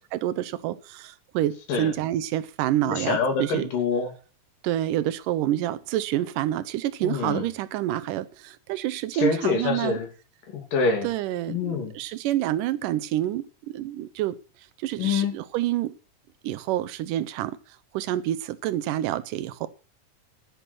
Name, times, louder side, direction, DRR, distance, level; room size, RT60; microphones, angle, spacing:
voice 1, 0.1-3.7 4.6-10.0 11.0-14.4 14.8-16.0 16.4-17.6 17.9-19.7, right 13 dB, 80° right, 14 dB, 2.2 m, -28 dB
voice 2, 2.9-4.1 7.0-7.5 9.2-10.1 10.5-11.1 11.5-11.9 15.0-15.3, left 4 dB, 80° left, 3 dB, 4.4 m, -25 dB
11.0 x 10.0 x 6.0 m, 0.38 s
omnidirectional pair, 3.8 m